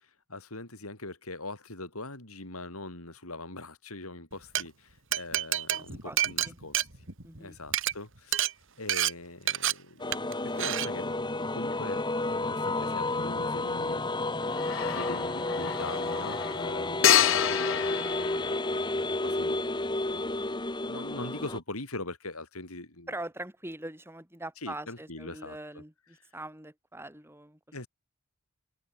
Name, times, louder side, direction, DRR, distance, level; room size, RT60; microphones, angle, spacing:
voice 1, 0.0-7.1 7.4-8.5 8.8-14.2 14.5-20.5 20.8-23.1 24.6-25.8 27.7-27.9, left 2 dB, 80° left, 7.4 m, -42 dB
Glass, 4.3-4.6 5.1-7.4 7.7-7.9 8.3-8.5 8.9-9.1 9.5-9.7 10.1-10.3 10.6-10.9, right 11 dB, 60° right, 3.5 m, -28 dB
voice 2, 5.7-6.2 6.4-6.6 7.2-7.6 23.1-27.6, right 1 dB, 10° right, 6.4 m, -42 dB
sound 1, 10.0-21.6, left 2 dB, 20° left, 1.6 m, -31 dB
sound 2, 11.7-11.8 14.4-19.2, left 10 dB, 60° left, 0.9 m, -29 dB
head